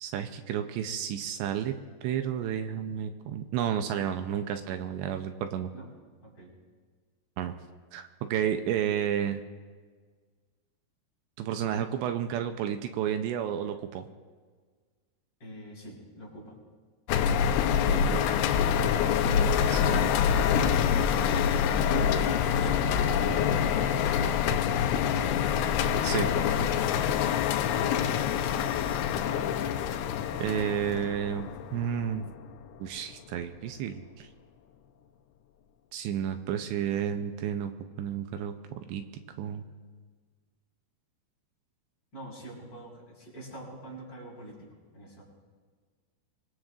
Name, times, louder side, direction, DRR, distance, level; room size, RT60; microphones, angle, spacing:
voice 1, 0.0-1.8 2.0-5.7 7.4-7.5 7.9-9.4 11.4-14.1 17.8-18.4 19.3-20.2 26.0-26.3 30.4-32.3 32.8-34.3 35.9-37.7 38.0-39.0 39.4-39.7, right 9 dB, 85° right, 7 dB, 2.9 m, -31 dB
voice 2, 6.2-6.5 15.4-16.6 22.2-24.1 27.4-27.8 42.1-45.2, right 1 dB, 25° left, -5 dB, 5.4 m, -45 dB
sound 1, 17.1-32.5, left 8 dB, 80° left, 2.8 m, -26 dB
25.0 x 21.0 x 2.5 m, 1.5 s
omnidirectional pair, 5.1 m